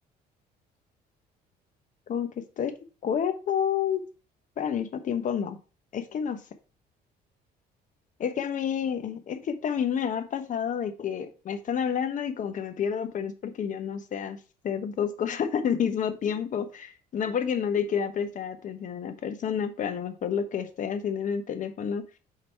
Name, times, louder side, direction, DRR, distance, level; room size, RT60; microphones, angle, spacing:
voice 1, 2.1-2.8 3.0-4.0 4.6-5.6 5.9-6.4 8.2-14.4 14.6-22.0, left 7 dB, 50° left, 9 dB, 1.1 m, -29 dB
6.6 x 4.0 x 4.5 m, 0.34 s
cardioid pair, 110°, 17 cm